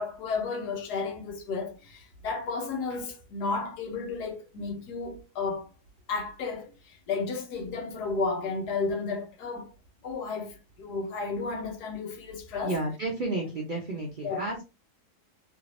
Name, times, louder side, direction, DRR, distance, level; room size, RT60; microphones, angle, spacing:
voice 1, 0.0-5.7 6.1-9.7 10.0-12.7 14.2-14.4, left 4 dB, 85° left, 1.4 m, -33 dB
voice 2, 12.6-14.6, right 2 dB, 60° right, 0.5 m, -31 dB
3.3 x 3.2 x 2.6 m
omnidirectional pair, 1.7 m